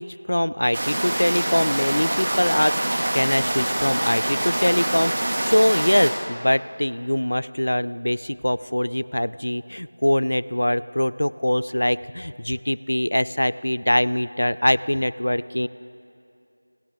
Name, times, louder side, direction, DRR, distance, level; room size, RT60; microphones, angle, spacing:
voice 1, 0.0-15.7, left 1 dB, 75° left, 18 dB, 0.4 m, -23 dB
sound 1, 0.7-6.1, right 1 dB, 40° right, 1.6 m, -25 dB
27.0 x 12.5 x 3.6 m, 2.6 s
figure-of-eight pair, 175°, 0 cm